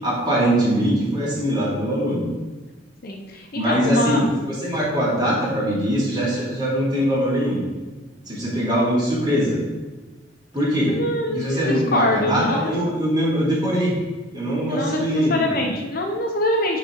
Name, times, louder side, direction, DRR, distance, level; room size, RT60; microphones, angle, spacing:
voice 1, 0.0-2.3 3.5-7.6 8.3-9.6 10.5-11.0 11.3-14.0 14.3-15.7, equal, 25° right, -7 dB, 2.7 m, -22 dB
voice 2, 3.0-4.2 10.9-12.7 14.7-16.8, left 1 dB, 50° left, 2 dB, 0.8 m, -24 dB
10.0 x 4.2 x 4.5 m, 1.2 s
head